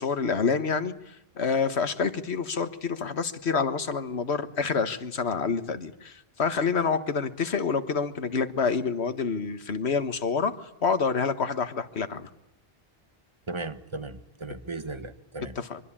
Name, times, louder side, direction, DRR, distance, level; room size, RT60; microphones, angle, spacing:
voice 1, 0.0-12.3 15.5-15.8, left 5 dB, 80° left, 10 dB, 1.7 m, -28 dB
voice 2, 13.5-15.6, right 2 dB, 25° right, 11 dB, 1.5 m, -36 dB
24.5 x 24.0 x 8.9 m, 0.83 s
omnidirectional pair, 1.1 m